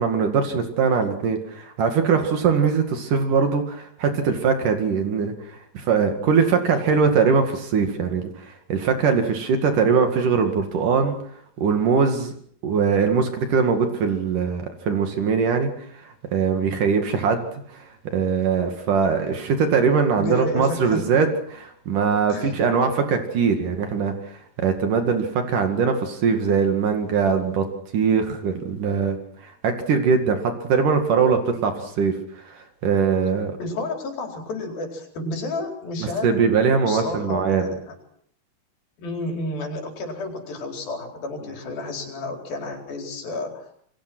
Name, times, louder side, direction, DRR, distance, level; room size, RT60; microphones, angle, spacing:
voice 1, 0.0-5.3 5.8-8.3 8.7-11.2 11.6-12.3 12.6-15.7 16.3-17.8 18.1-24.1 24.6-27.6 27.9-29.2 29.6-32.2 32.5-33.5 36.0-37.7, right 5 dB, 65° right, 6 dB, 3.6 m, -21 dB
voice 2, 20.2-21.0 22.3-22.5 33.6-36.3 36.9-38.0 39.0-43.7, left 2 dB, 85° left, 3 dB, 6.2 m, -31 dB
28.5 x 23.0 x 6.2 m, 0.63 s
omnidirectional pair, 4.1 m